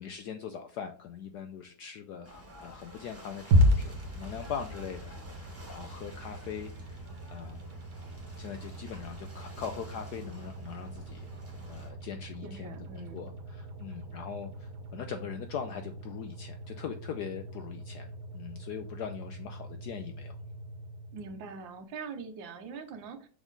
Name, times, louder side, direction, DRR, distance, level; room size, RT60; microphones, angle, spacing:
voice 1, 0.0-7.0 7.3-8.1 8.4-11.3 11.7-20.4, left 7 dB, 75° left, 7 dB, 0.9 m, -41 dB
Ocean / Boat Water vehicle, 2.2-11.9, equal, 10° right, 1.2 m, -51 dB
sound 1, 3.5-21.7, equal, 55° right, 1.7 m, -35 dB
voice 2, 12.4-13.3 21.1-23.3, right 5 dB, 70° right, 8 dB, 1.5 m, -43 dB
5.9 x 4.2 x 3.9 m, 0.43 s
omnidirectional pair, 2.3 m